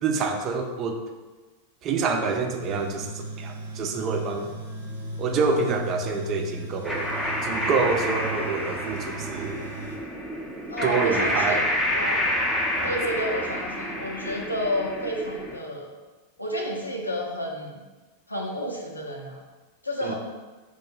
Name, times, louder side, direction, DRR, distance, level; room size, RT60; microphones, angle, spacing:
voice 1, 0.0-1.0 1.8-3.1 3.4-4.5 5.2-7.1 7.4-9.6 10.8-11.6 12.8-12.9 20.0-20.1, right 4 dB, 35° right, 3 dB, 0.5 m, -27 dB
Tools, 2.6-9.9, right 1 dB, 85° right, 0.8 m, -37 dB
sound 1, 6.8-15.6, left 1 dB, 5° left, 0.6 m, -28 dB
voice 2, 10.7-11.6 11.9-12.2 12.8-15.9 16.4-17.8 18.3-19.4 19.8-20.1, equal, 85° left, -1 dB, 0.7 m, -30 dB
4.4 x 2.2 x 4.4 m, 1.3 s
figure-of-eight pair, 90°, 0 cm